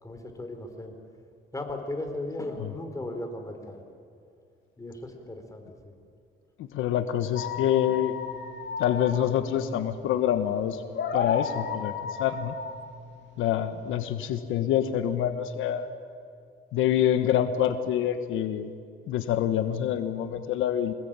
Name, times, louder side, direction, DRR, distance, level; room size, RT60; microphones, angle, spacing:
voice 1, 0.0-1.0 1.5-3.9 4.8-5.9, left 2 dB, 15° left, 4 dB, 4.2 m, -36 dB
voice 2, 6.6-8.1 8.8-10.8 11.1-11.9 12.2-12.5 13.4-15.9 16.7-18.7 19.1-20.9, left 10 dB, 90° left, 10 dB, 1.2 m, -26 dB
sound 1, 7.3-13.9, left 6 dB, 65° left, 2.0 m, -34 dB
25.0 x 20.0 x 8.9 m, 2.3 s
cardioid pair, 90°, 20 cm